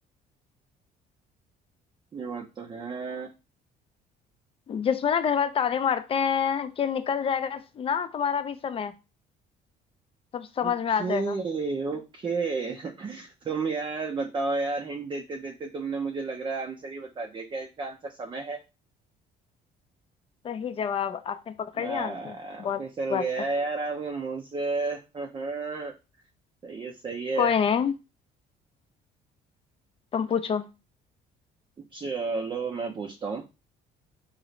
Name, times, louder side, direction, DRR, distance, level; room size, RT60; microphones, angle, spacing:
voice 1, 2.1-3.3 10.6-18.6 21.7-25.9 26.6-27.5 31.9-33.4, right 4 dB, 30° right, 0.5 m, -32 dB
voice 2, 4.7-8.9 10.3-11.4 20.4-22.8 23.1-23.5 27.4-27.9 30.1-30.7, left 7 dB, 35° left, 0.5 m, -27 dB
3.9 x 2.4 x 3.1 m
cardioid pair, 110°, 17 cm